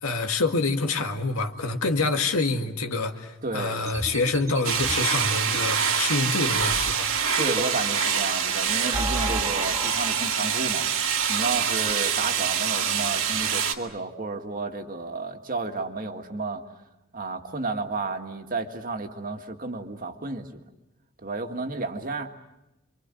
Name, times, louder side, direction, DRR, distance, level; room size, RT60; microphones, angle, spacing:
voice 1, 0.0-7.1, left 3 dB, 80° left, 2.0 m, -26 dB
voice 2, 3.4-3.9 7.4-10.9 11.3-16.6 17.1-20.6 21.2-22.3, right 3 dB, 40° right, 1.9 m, -32 dB
sound 1, 3.9-5.6 6.5-8.0 8.6-10.8, right 1 dB, 15° right, 1.8 m, -34 dB
sound 2, 4.6-13.7, right 7 dB, 65° right, 2.0 m, -25 dB
28.5 x 25.0 x 7.7 m
head